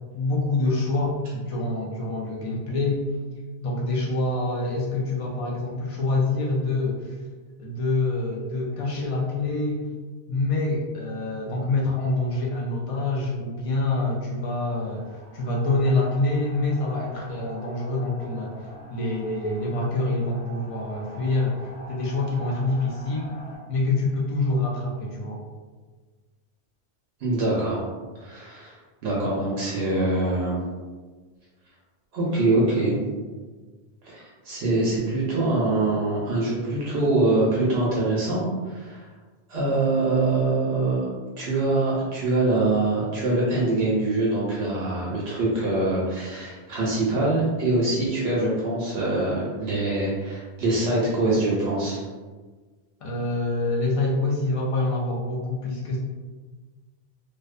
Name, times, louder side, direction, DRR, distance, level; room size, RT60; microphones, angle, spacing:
voice 1, 0.1-3.0 3.6-7.2 7.6-9.9 10.3-23.3 23.7-25.4 53.0-56.0, left 2 dB, 65° left, -3 dB, 0.3 m, -26 dB
sound 1, 14.5-23.6, right 1 dB, 35° left, 1.0 m, -45 dB
voice 2, 27.2-27.8 28.2-28.8 29.0-30.5 32.1-33.0 34.0-39.0 39.5-41.1 41.4-52.0, right 2 dB, 75° right, -5 dB, 0.8 m, -24 dB
2.5 x 2.0 x 2.4 m, 1.4 s
omnidirectional pair, 1.1 m